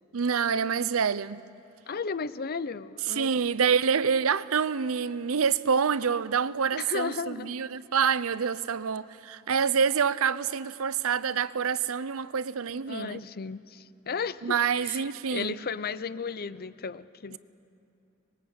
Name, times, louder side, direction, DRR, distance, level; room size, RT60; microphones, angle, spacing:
voice 1, 0.1-1.4 3.2-13.2 14.4-15.5, right 6 dB, 75° right, 0.6 m, -27 dB
voice 2, 1.9-3.7 6.7-7.5 12.9-17.4, left 5 dB, 45° left, 0.6 m, -35 dB
25.5 x 21.5 x 8.4 m
head